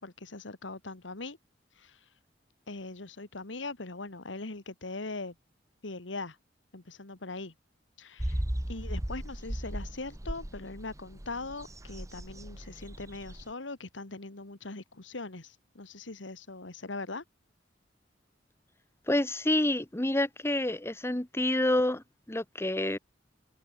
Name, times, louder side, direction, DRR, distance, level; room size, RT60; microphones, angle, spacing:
voice 1, 0.0-1.4 1.8-2.0 2.7-5.4 5.8-6.4 6.7-7.5 8.0-8.4 8.7-17.2, left 3 dB, 90° left, 2.0 m, -41 dB
sound 1, 8.2-13.5, equal, 15° right, 1.3 m, -37 dB
voice 2, 19.1-23.0, left 1 dB, 15° left, 1.2 m, -28 dB
head